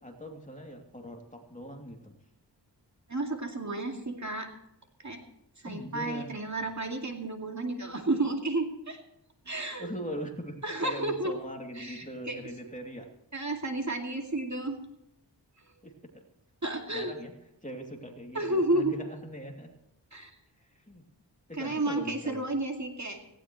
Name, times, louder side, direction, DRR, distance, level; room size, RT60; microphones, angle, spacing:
voice 1, 0.0-2.1 5.6-6.3 9.8-13.1 15.8-16.2 16.9-17.3 17.6-19.7 20.6-21.0 21.5-22.5, equal, 15° left, 1 dB, 2.8 m, -41 dB
voice 2, 3.1-4.5 5.0-5.2 5.6-9.0 9.5-9.9 10.6-11.4 11.8-12.4 13.3-14.8 16.6-17.1 18.3-18.9 20.1-20.3 21.5-23.2, right 2 dB, 40° right, 2 dB, 2.4 m, -31 dB
18.0 x 16.5 x 3.2 m, 0.87 s
wide cardioid pair, 85°, 44 cm